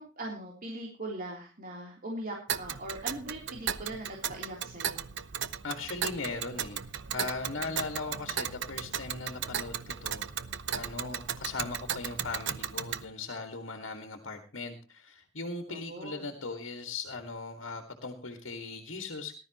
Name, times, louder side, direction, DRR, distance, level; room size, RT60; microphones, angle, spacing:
voice 1, 0.0-5.1 7.7-7.9 15.7-16.3, right 1 dB, 45° right, -1 dB, 3.4 m, -41 dB
Tick, 2.5-13.0, right 8 dB, 65° right, 0.8 m, -36 dB
voice 2, 5.6-6.8 7.1-10.3 10.7-19.3, left 3 dB, 70° left, 5 dB, 1.9 m, -39 dB
18.5 x 12.5 x 3.0 m, 0.34 s
head